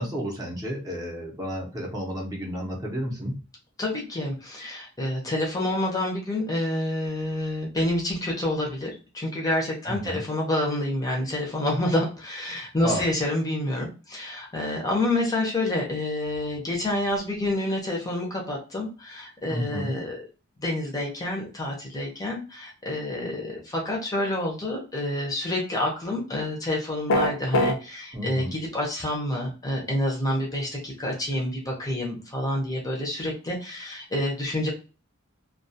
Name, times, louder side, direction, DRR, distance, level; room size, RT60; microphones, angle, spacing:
voice 1, 0.0-3.3 9.9-10.2 12.8-13.0 19.5-19.9 28.1-28.5, equal, 20° right, -3 dB, 0.7 m, -31 dB
voice 2, 3.8-20.2 20.6-34.7, left 1 dB, 15° left, -1 dB, 0.6 m, -28 dB
sound 1, 27.1-27.8, left 1 dB, 65° left, 0.5 m, -21 dB
2.3 x 2.3 x 2.6 m, 0.33 s
head